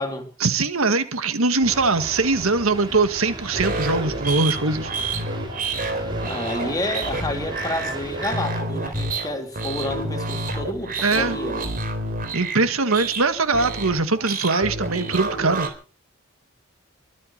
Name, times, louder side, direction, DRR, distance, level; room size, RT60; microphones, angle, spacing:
voice 1, 0.4-4.9 11.0-11.4 12.3-15.7, right 3 dB, 80° right, 1.7 m, -21 dB
sound 1, 1.6-8.6, right 2 dB, 20° right, 4.1 m, -37 dB
sound 2, 3.5-15.7, right 2 dB, 45° right, 4.0 m, -29 dB
voice 2, 5.9-11.7, left 1 dB, 20° left, 3.5 m, -30 dB
23.5 x 8.5 x 6.5 m
head